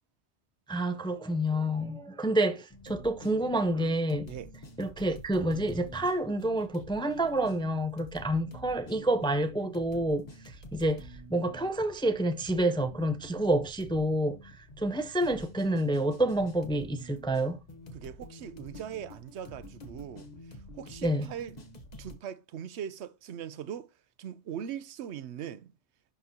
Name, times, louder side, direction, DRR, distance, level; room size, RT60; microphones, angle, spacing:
voice 1, 0.7-4.3 4.8-17.6 21.0-21.3, right 1 dB, 5° left, 0.4 m, -28 dB
sound 1, 2.7-22.2, equal, 40° left, 1.2 m, -48 dB
voice 2, 17.9-21.6 22.0-23.9 24.2-25.7, right 9 dB, 90° right, 0.9 m, -40 dB
11.5 x 4.0 x 2.9 m
omnidirectional pair, 1.1 m